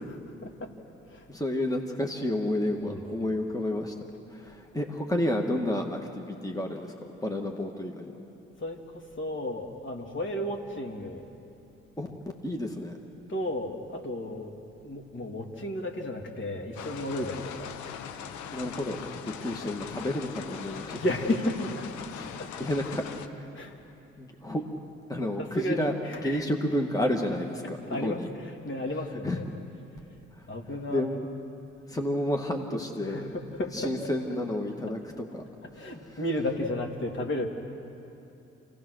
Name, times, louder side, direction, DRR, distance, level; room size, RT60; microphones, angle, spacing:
voice 1, 0.1-0.7 1.1-1.2 2.8-3.3 8.6-8.8 9.2-11.3 13.3-14.5 14.8-17.7 20.9-21.8 22.4-22.5 23.5-23.8 25.4-26.4 27.9-28.2 28.6-29.4 30.5-31.0 33.1-33.9 35.8-37.5, left 1 dB, 40° left, 2 dB, 2.9 m, -33 dB
voice 2, 1.3-3.9 4.3-8.2 12.0-12.2 12.4-13.0 18.5-19.0 19.4-21.0 22.1-23.5 24.2-24.7 25.1-26.0 26.2-28.3 29.2-29.4 30.4-30.5 30.9-31.2 31.9-33.3 33.7-35.4 35.7-36.2, left 1 dB, 10° left, 2 dB, 2.1 m, -31 dB
sound 1, 16.8-23.3, left 8 dB, 75° left, 1.1 m, -41 dB
28.0 x 17.5 x 6.6 m, 2.8 s
hypercardioid pair, 45°, 29 cm